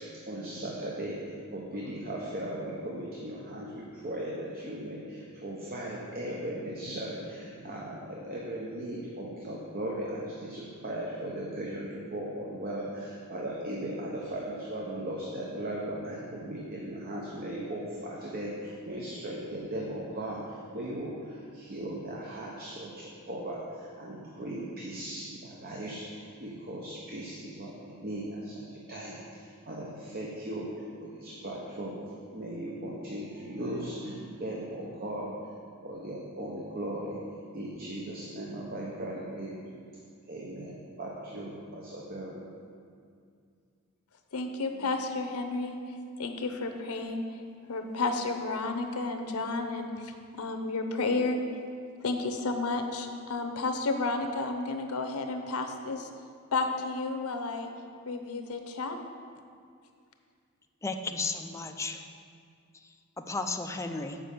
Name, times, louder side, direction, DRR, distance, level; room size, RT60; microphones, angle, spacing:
voice 1, 0.0-35.5 35.8-37.2 37.5-39.6 40.3-42.5, right 1 dB, 45° right, -3 dB, 0.9 m, -38 dB
voice 2, 44.3-47.4 47.7-51.4 52.0-56.1 56.5-57.7 58.1-59.0, left 3 dB, 80° left, 5 dB, 0.8 m, -32 dB
voice 3, 60.8-62.1 62.8-64.2, left 3 dB, 15° left, 5 dB, 0.4 m, -34 dB
7.4 x 5.0 x 6.7 m, 2.3 s
head